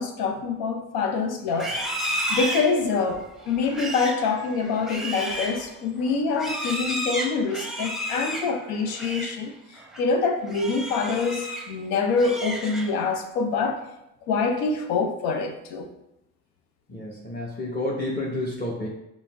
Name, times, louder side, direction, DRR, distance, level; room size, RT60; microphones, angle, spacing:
voice 1, 0.0-13.8 14.3-15.9, left 4 dB, 85° left, 0.7 m, -26 dB
Livestock farm animals working animals, 1.5-9.4 9.8-10.1 10.5-11.7 12.1-13.1, equal, ahead, 0.7 m, -32 dB
voice 2, 16.9-18.9, left 1 dB, 25° left, 1.1 m, -30 dB
5.5 x 2.1 x 3.4 m
supercardioid pair, 65°, 36 cm